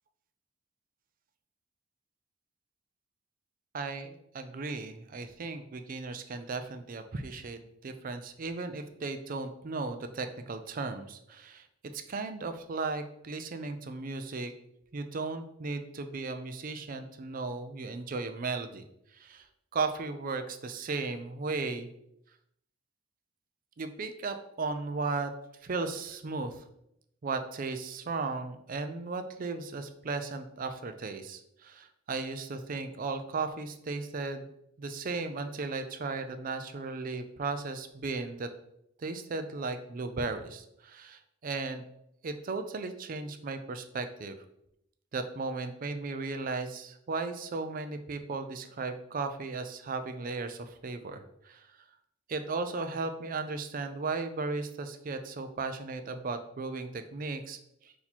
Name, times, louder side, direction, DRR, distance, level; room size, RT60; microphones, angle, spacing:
voice 1, 3.7-11.7 11.9-14.5 14.9-18.8 19.1-19.5 19.7-21.9 23.8-25.3 25.6-26.6 27.2-34.5 34.8-38.5 39.0-41.8 42.2-44.4 45.1-51.8 52.3-57.9, right 3 dB, 45° right, 9 dB, 0.4 m, -36 dB
4.2 x 2.8 x 4.2 m, 0.77 s
head